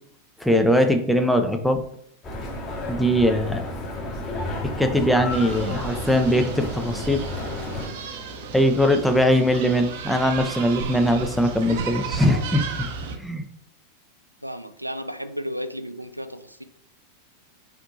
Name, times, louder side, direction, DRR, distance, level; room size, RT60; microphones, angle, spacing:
voice 1, 0.4-1.8 2.9-3.6 4.8-7.2 8.5-12.6 13.2-13.4, equal, ahead, 5 dB, 0.6 m, -21 dB
sound 1, 2.2-7.9, left 1 dB, 25° left, 1.6 m, -32 dB
sound 2, 5.3-13.1, right 5 dB, 50° right, 0.7 m, -34 dB
voice 2, 14.4-16.6, equal, 90° right, 11 dB, 0.3 m, -33 dB
4.4 x 4.3 x 2.7 m, 0.65 s
figure-of-eight pair, 90°, 0 cm